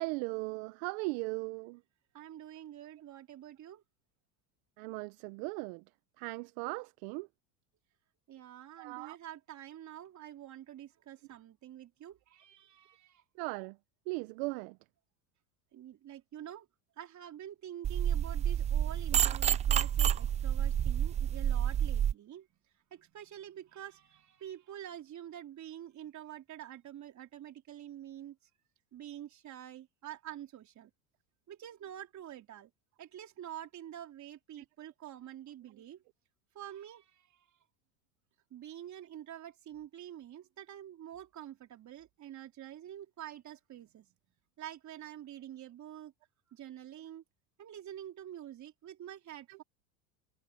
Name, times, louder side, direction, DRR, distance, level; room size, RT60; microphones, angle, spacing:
voice 1, 0.0-1.8 4.8-5.8 6.2-7.3 8.8-9.2 13.4-13.8 14.1-14.8 49.5-49.6, right 26 dB, 65° right, 1.1 m, -38 dB
voice 2, 2.1-3.8 8.3-13.2 15.7-16.7 17.0-22.5 22.9-28.4 28.9-30.9 31.5-32.7 33.0-36.0 36.5-37.4 38.5-44.1 44.6-46.1 46.5-47.2 47.6-49.6, right 11 dB, 40° right, 3.7 m, -47 dB
sound 1, 17.8-22.1, right 9 dB, 15° right, 0.3 m, -29 dB
supercardioid pair, 105°, 44 cm